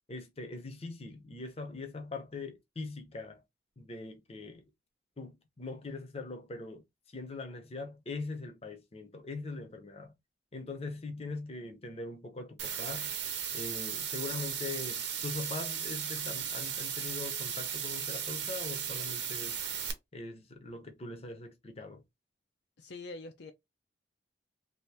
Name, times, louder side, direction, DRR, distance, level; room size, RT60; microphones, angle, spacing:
voice 1, 0.1-3.4 3.8-4.7 5.2-6.8 7.1-10.1 10.5-13.2 13.5-19.6 20.1-22.0, left 3 dB, 35° left, 0.7 m, -42 dB
sound 1, 12.6-19.9, right 8 dB, 65° right, 0.8 m, -36 dB
voice 2, 22.8-23.5, left 3 dB, 65° left, 0.5 m, -44 dB
2.8 x 2.6 x 3.3 m
head